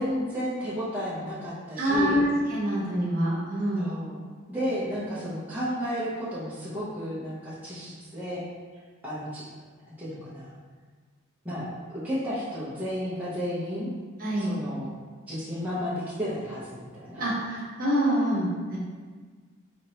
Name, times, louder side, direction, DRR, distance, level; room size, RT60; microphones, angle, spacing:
voice 1, 0.0-2.2 3.8-4.2 4.5-8.4 9.0-9.4 9.9-10.5 11.4-11.7 12.0-13.9 14.4-14.9 15.3-17.2, equal, 10° right, -11 dB, 0.8 m, -32 dB
voice 2, 1.8-3.9 14.2-14.5 17.2-18.8, equal, 40° right, -6 dB, 1.1 m, -26 dB
5.0 x 3.1 x 2.9 m, 1.5 s
head